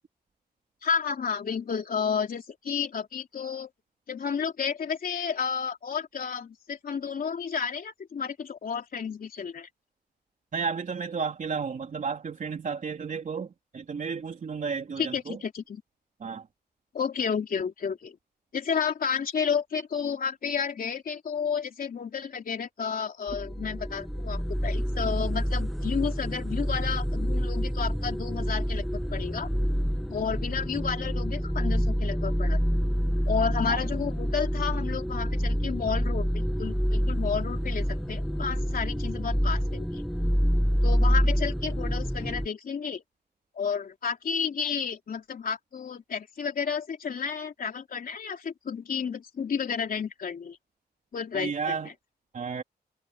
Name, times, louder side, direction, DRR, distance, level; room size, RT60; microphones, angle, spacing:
voice 1, 0.8-3.7 4.1-9.7 15.0-15.8 16.9-18.2 18.5-29.5 30.1-32.6 33.3-40.0 40.8-43.0 43.5-50.6 51.1-51.8, left 6 dB, 60° left, 3.3 m, -31 dB
voice 2, 10.5-15.4 16.2-16.5 33.7-33.8 51.3-51.9 52.3-52.6, right 5 dB, 50° right, 3.7 m, -32 dB
sound 1, 23.3-42.5, equal, ahead, 1.9 m, -27 dB
wide cardioid pair, 145°, 17 cm